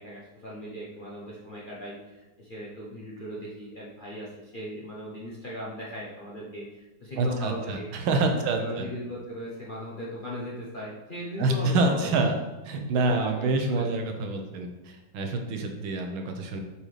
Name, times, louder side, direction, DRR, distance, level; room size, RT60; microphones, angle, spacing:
voice 1, 0.0-7.9 8.3-12.2 13.0-13.3 13.7-13.9, equal, 45° left, -6 dB, 0.7 m, -38 dB
voice 2, 7.2-8.9 11.4-12.4 12.7-16.6, right 2 dB, 90° right, 4 dB, 1.6 m, -27 dB
7.4 x 4.3 x 3.3 m, 1.1 s
omnidirectional pair, 2.2 m